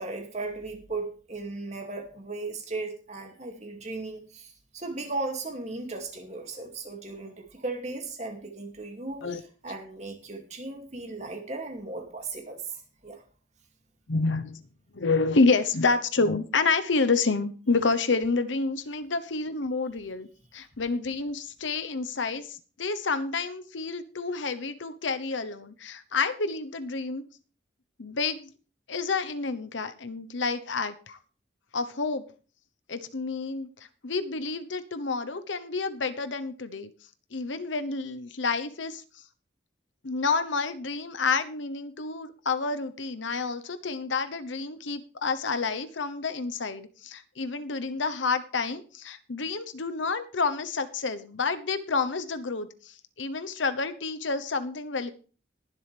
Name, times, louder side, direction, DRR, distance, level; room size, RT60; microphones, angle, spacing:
voice 1, 0.0-9.2 9.6-13.2, right 3 dB, 35° right, 3 dB, 2.5 m, -36 dB
voice 2, 14.1-14.6 14.9-27.2 28.0-28.5 28.9-31.2 31.7-32.2 32.9-33.7 34.0-36.9 37.3-39.0 40.0-55.1, left 4 dB, 90° left, 11 dB, 1.0 m, -29 dB
20.5 x 7.7 x 3.4 m, 0.38 s
head